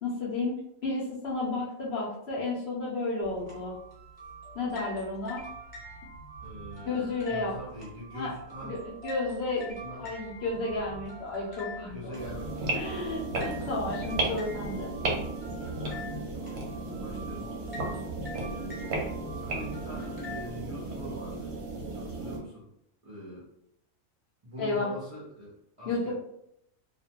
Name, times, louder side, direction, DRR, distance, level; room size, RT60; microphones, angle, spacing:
voice 1, 0.0-3.7 4.5-5.4 6.9-7.5 8.1-8.3 8.6-8.8 9.0-12.1 12.7-14.9 24.6-24.9 25.9-26.1, left 3 dB, 55° left, -5 dB, 0.8 m, -32 dB
sound 1, 3.2-20.5, right 1 dB, 20° right, 0.8 m, -44 dB
voice 2, 6.4-7.0 7.3-8.8 9.8-10.1 11.9-14.1 15.7-18.0 18.3-19.1 19.4-21.5 21.9-22.7 23.0-23.5 24.4-26.1, equal, 40° right, -8 dB, 0.5 m, -44 dB
sound 2, 12.1-22.4, right 2 dB, 60° right, 0.8 m, -34 dB
2.4 x 2.2 x 2.8 m, 0.75 s
omnidirectional pair, 1.4 m